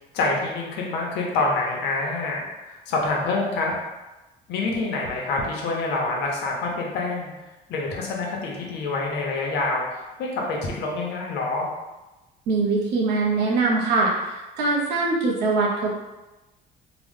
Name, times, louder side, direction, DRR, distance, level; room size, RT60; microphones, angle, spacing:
voice 1, 0.1-3.7 4.5-7.3 7.7-11.7, left 3 dB, 85° left, -1 dB, 0.7 m, -26 dB
voice 2, 12.5-15.9, right 3 dB, 85° right, -2 dB, 0.7 m, -22 dB
2.9 x 2.1 x 3.3 m, 1.1 s
cardioid pair, 110°, 17 cm